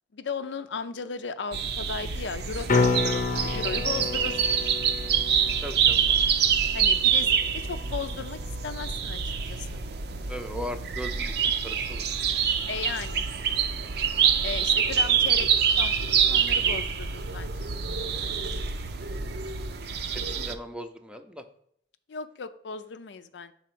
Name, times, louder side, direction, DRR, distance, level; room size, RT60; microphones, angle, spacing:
voice 1, 0.1-4.6 6.7-9.8 12.7-13.3 14.4-15.5 15.8-17.7 22.1-23.5, left 5 dB, 85° left, 10 dB, 0.5 m, -36 dB
sound 1, 1.5-20.5, right 7 dB, 65° right, 0.6 m, -26 dB
sound 2, 2.7-8.7 13.4-13.5, left 3 dB, 45° left, 0.7 m, -31 dB
voice 2, 5.6-6.5 10.3-11.3 11.6-12.2 12.5-12.6 19.0-19.2 20.1-21.5, equal, 5° right, 7 dB, 0.5 m, -39 dB
5.7 x 4.2 x 6.0 m, 0.68 s
head